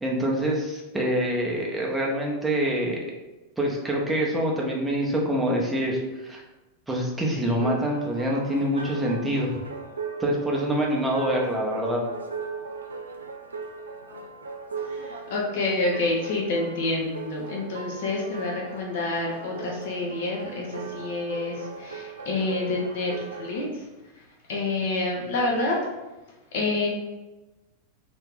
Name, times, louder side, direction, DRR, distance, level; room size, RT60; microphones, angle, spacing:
voice 1, 0.0-3.0 3.6-6.4 6.9-9.5 10.2-12.0, equal, 5° right, -3 dB, 0.8 m, -25 dB
sound 1, 7.5-23.7, right 5 dB, 70° right, 0.3 m, -38 dB
voice 2, 14.8-23.9 24.5-25.8 26.5-26.9, left 2 dB, 55° left, -2 dB, 0.8 m, -28 dB
3.0 x 2.7 x 3.6 m, 1.1 s
figure-of-eight pair, 90°, 0 cm